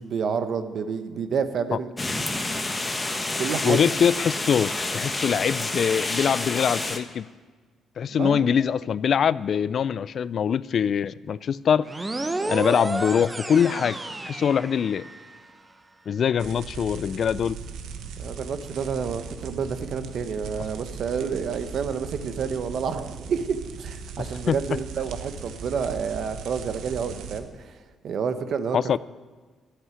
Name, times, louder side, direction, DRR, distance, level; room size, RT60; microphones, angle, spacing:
voice 1, 0.0-1.9 3.4-3.8 8.1-8.7 18.2-27.8 28.0-28.8, right 6 dB, 60° right, 10 dB, 1.1 m, -29 dB
sound 1, 2.0-7.0, left 2 dB, 15° left, 1.4 m, -29 dB
voice 2, 3.6-7.3 8.0-11.9 12.5-14.0 14.2-15.0 16.1-17.6 24.5-24.6 28.7-29.0, left 7 dB, 55° left, 19 dB, 0.3 m, -23 dB
sound 2, 11.9-15.4, right 2 dB, 20° right, 0.9 m, -31 dB
sound 3, 16.4-27.4, right 5 dB, 85° right, 1.2 m, -38 dB
11.0 x 8.1 x 9.8 m, 1.4 s
cardioid pair, 90°, 0 cm